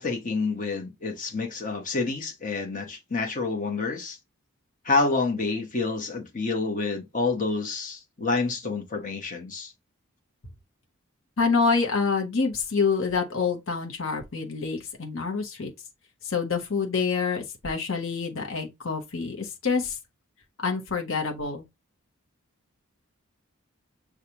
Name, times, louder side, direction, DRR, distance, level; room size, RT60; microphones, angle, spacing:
voice 1, 0.0-4.2 4.8-9.7, left 3 dB, 35° left, 1.1 m, -28 dB
voice 2, 11.4-15.7 16.2-20.0 20.6-21.6, left 4 dB, 60° left, 1.0 m, -27 dB
6.6 x 2.4 x 2.8 m
head